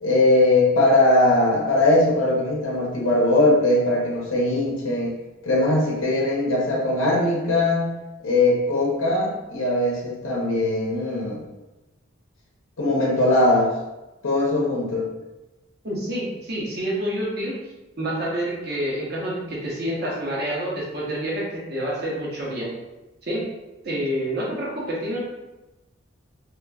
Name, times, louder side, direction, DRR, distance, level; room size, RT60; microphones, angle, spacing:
voice 1, 0.0-5.1 5.4-7.8 8.2-11.4 12.8-13.7 14.2-15.1, left 2 dB, 75° left, -3 dB, 0.7 m, -20 dB
voice 2, 15.8-17.6 18.0-22.7 23.2-23.5 23.8-25.2, right 1 dB, 50° right, -5 dB, 0.9 m, -28 dB
3.0 x 3.0 x 2.3 m, 1.0 s
head